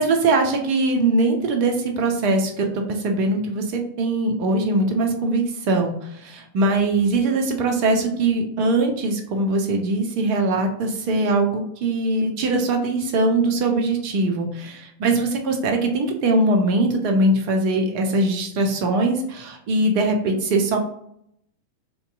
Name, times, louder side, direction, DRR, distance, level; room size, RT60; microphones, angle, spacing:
voice 1, 0.0-20.8, right 2 dB, 45° right, 3 dB, 0.5 m, -21 dB
2.6 x 2.2 x 2.5 m, 0.73 s
figure-of-eight pair, 90°, 0 cm